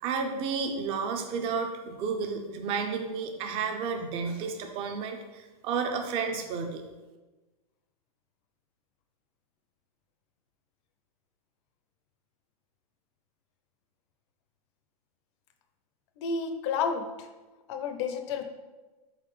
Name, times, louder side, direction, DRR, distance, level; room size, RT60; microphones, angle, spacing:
voice 1, 0.0-6.8, right 5 dB, 30° right, 5 dB, 0.5 m, -32 dB
voice 2, 16.2-17.3 17.7-18.4, left 5 dB, 45° left, 6 dB, 0.5 m, -31 dB
4.0 x 3.9 x 3.1 m, 1.2 s
hypercardioid pair, 140°, 21 cm